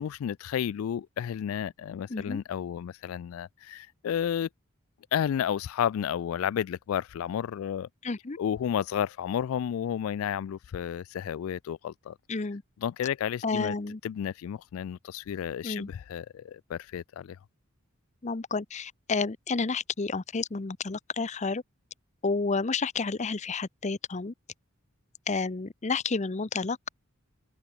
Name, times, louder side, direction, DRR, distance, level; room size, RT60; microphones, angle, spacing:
voice 1, 0.0-4.5 5.1-7.9 8.4-12.2 12.8-13.7 14.0-17.4, left 9 dB, 75° left, 0.3 m, -32 dB
voice 2, 2.1-2.4 8.0-8.4 12.3-12.6 13.4-14.0 15.6-15.9 18.2-21.6 22.2-24.3 25.3-26.9, left 4 dB, 35° left, 0.7 m, -30 dB
head